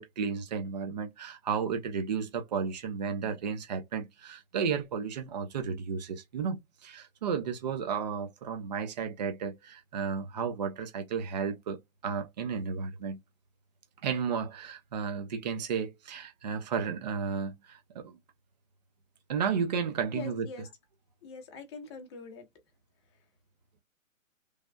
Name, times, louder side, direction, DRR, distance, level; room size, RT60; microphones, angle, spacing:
voice 1, 0.0-13.2 14.0-18.2 19.3-20.5, right 6 dB, 35° right, 0.5 m, -33 dB
voice 2, 20.1-20.7 21.2-22.4, left 4 dB, 20° left, 0.7 m, -43 dB
3.3 x 2.2 x 2.3 m
hypercardioid pair, 145°, 40 cm